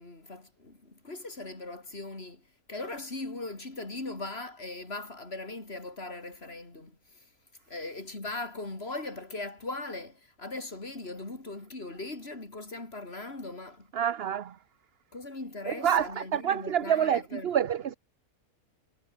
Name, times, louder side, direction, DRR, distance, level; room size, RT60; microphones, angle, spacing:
voice 1, 0.0-7.3 7.7-13.9 15.1-17.5, left 2 dB, 45° left, 4.4 m, -39 dB
voice 2, 13.9-14.6 15.7-17.9, right 9 dB, 50° right, 1.0 m, -27 dB
omnidirectional pair, 1.5 m